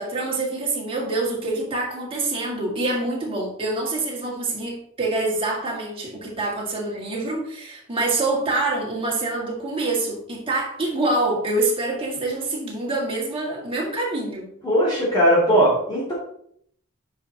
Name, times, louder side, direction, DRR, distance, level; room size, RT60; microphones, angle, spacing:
voice 1, 0.0-14.5, right 2 dB, 25° right, -2 dB, 1.9 m, -26 dB
voice 2, 14.6-16.1, equal, 20° left, -8 dB, 2.5 m, -19 dB
9.0 x 5.7 x 2.8 m, 0.66 s
head